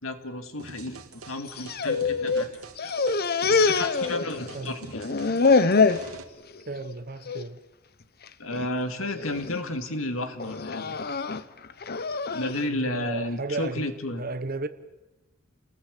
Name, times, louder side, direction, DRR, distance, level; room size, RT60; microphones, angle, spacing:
voice 1, 0.0-2.5 2.8-2.9 3.5-5.1 8.4-11.0 12.3-14.3, left 2 dB, 65° left, 2.4 m, -32 dB
sound 1, 0.6-6.2, right 3 dB, 90° right, 2.7 m, -45 dB
sound 2, 1.4-2.5 2.8-4.6 4.9-6.1 6.6-6.9 7.3-7.4 8.3-8.7 9.2-9.6 10.4-12.6, left 4 dB, 45° left, 0.9 m, -25 dB
voice 2, 6.7-7.6 12.7-14.7, right 3 dB, 45° right, 1.0 m, -34 dB
30.0 x 20.0 x 8.4 m
head